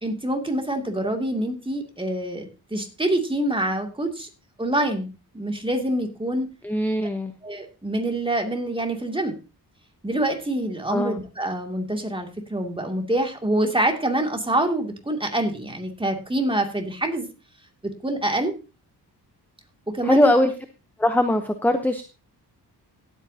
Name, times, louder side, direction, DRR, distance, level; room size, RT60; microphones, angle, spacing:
voice 1, 0.0-4.3 4.6-6.5 7.4-9.3 10.0-17.3 17.8-18.5 19.9-20.3, right 1 dB, 15° right, 3 dB, 2.5 m, -26 dB
voice 2, 6.6-7.3 10.9-11.2 20.1-20.5 21.0-22.0, left 1 dB, 5° left, 8 dB, 0.8 m, -21 dB
17.5 x 8.4 x 2.8 m, 0.32 s
cardioid pair, 90°, 40 cm